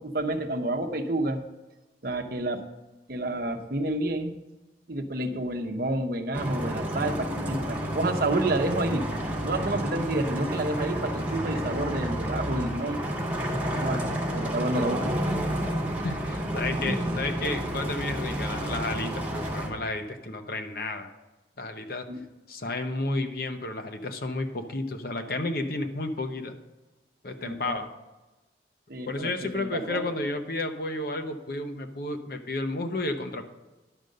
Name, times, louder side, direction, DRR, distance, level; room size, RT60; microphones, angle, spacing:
voice 1, 0.0-1.4 2.0-2.6 3.1-4.4 4.9-9.1 9.4-13.0 13.8-14.0 14.3-15.1 16.9-17.0 22.1-22.2 27.4-27.8 28.9-30.0, right 2 dB, 55° right, 5 dB, 0.9 m, -29 dB
sound 1, 6.3-19.7, equal, 10° right, 2.0 m, -30 dB
voice 2, 16.0-21.1 21.6-22.1 22.5-26.6 27.2-27.9 29.1-33.4, left 2 dB, 55° left, 6 dB, 0.9 m, -32 dB
11.0 x 5.3 x 6.5 m, 1.1 s
head